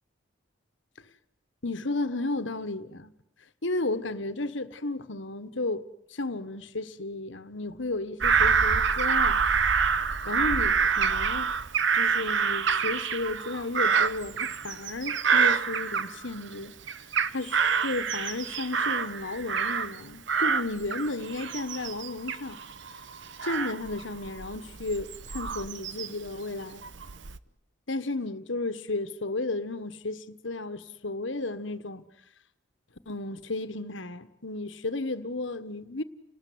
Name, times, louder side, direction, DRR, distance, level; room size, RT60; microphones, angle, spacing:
voice 1, 1.6-3.1 3.6-5.8 6.1-9.4 10.0-11.5 11.9-16.7 17.3-22.6 23.4-26.8 27.9-32.0 33.0-36.0, left 2 dB, 70° left, 1.5 m, -33 dB
Bird vocalization bird call bird song / Crow, 8.2-16.5 16.9-20.0 20.3-26.3 26.8-27.4, right 6 dB, 65° right, 1.0 m, -27 dB
30.0 x 19.5 x 9.6 m
head